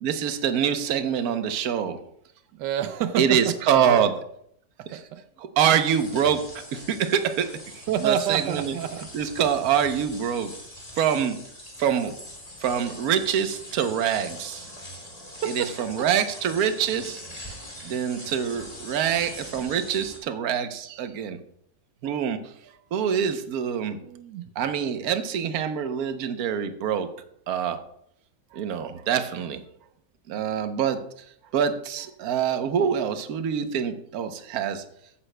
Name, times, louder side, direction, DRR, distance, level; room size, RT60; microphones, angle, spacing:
voice 1, 0.0-2.0 3.2-4.1 4.9-5.0 5.4-8.7 9.1-10.5 11.0-11.4 11.8-12.1 12.6-14.7 15.5-17.2 17.8-21.4 22.0-22.4 22.9-24.0 24.6-27.1 27.5-27.8 28.5-29.6 30.3-31.0 31.5-34.8, right 8 dB, 65° right, 8 dB, 1.2 m, -25 dB
voice 2, 2.5-3.5 3.9-4.0 4.9-5.2 7.9-9.0 15.4-15.7 24.0-24.5, right 9 dB, 85° right, 10 dB, 1.2 m, -28 dB
sound 1, 5.7-20.2, left 1 dB, 20° left, 2.0 m, -42 dB
14.0 x 9.8 x 2.2 m, 0.70 s
omnidirectional pair, 1.8 m